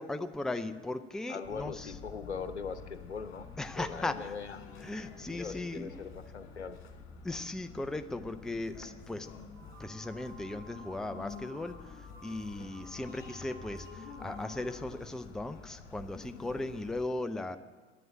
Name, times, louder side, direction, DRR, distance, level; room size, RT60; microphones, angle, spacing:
voice 1, 0.0-1.9 3.6-4.3 4.8-6.1 7.2-9.3 9.8-17.6, left 2 dB, ahead, 9 dB, 0.6 m, -37 dB
voice 2, 1.3-4.6 5.2-6.8, left 5 dB, 85° left, 11 dB, 0.9 m, -41 dB
sound 1, 1.4-17.0, left 5 dB, 40° left, 2.5 m, -49 dB
sound 2, 9.5-14.6, right 1 dB, 60° right, 4.0 m, -53 dB
11.0 x 8.6 x 9.7 m, 1.4 s
figure-of-eight pair, 75°, 33 cm